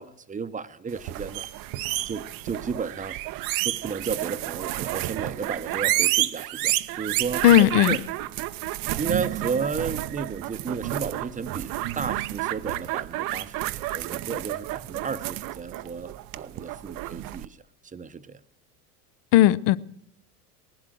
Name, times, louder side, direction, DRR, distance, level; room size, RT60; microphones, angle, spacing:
voice 1, 0.0-1.5 2.0-3.2 3.6-8.0 9.0-17.6 17.8-18.4, right 5 dB, 15° right, 0.7 m, -33 dB
sound 1, 0.9-17.5, right 16 dB, 50° right, 0.6 m, -30 dB
voice 2, 7.4-8.0 19.3-19.8, left 14 dB, 60° left, 0.7 m, -16 dB
18.5 x 12.0 x 6.1 m
hypercardioid pair, 80°, 46 cm